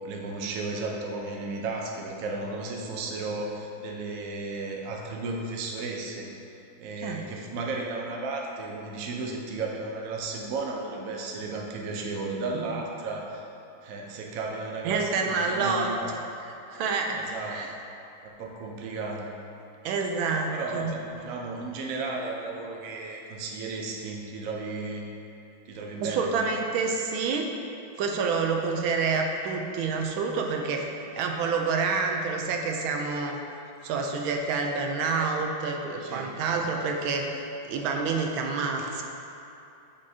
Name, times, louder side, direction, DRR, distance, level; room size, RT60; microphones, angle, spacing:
voice 1, 0.0-6.3 6.8-13.5 13.8-16.2 17.1-17.8 18.2-19.3 20.5-25.1 25.7-26.4 36.0-36.7 38.8-38.9, right 3 dB, 60° right, 0 dB, 0.9 m, -34 dB
voice 2, 14.8-15.9 16.4-17.7 19.8-20.9 26.0-27.5 28.0-33.4 33.8-37.2 37.6-39.0, right 4 dB, 85° right, 2 dB, 1.4 m, -28 dB
8.3 x 5.2 x 2.7 m, 2.8 s
omnidirectional pair, 2.2 m